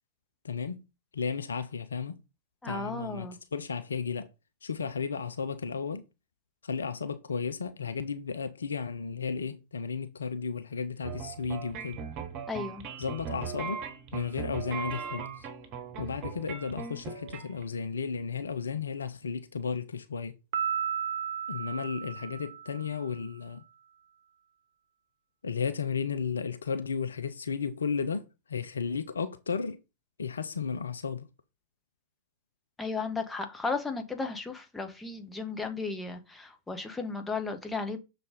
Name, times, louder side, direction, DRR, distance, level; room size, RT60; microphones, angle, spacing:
voice 1, 0.4-0.8 1.1-2.2 2.6-4.3 4.6-6.0 6.6-12.0 13.0-13.8 14.1-15.5 16.0-20.4 21.5-23.6 25.4-29.8 30.2-31.3, left 5 dB, 70° left, 0.6 m, -34 dB
voice 2, 2.6-3.4 12.5-12.8 32.8-38.0, left 4 dB, 10° left, 1.4 m, -34 dB
sound 1, 11.0-17.6, right 6 dB, 40° right, 1.5 m, -39 dB
Piano, 20.5-23.1, right 8 dB, 55° right, 1.0 m, -34 dB
6.6 x 4.1 x 5.1 m
figure-of-eight pair, 90°, 0 cm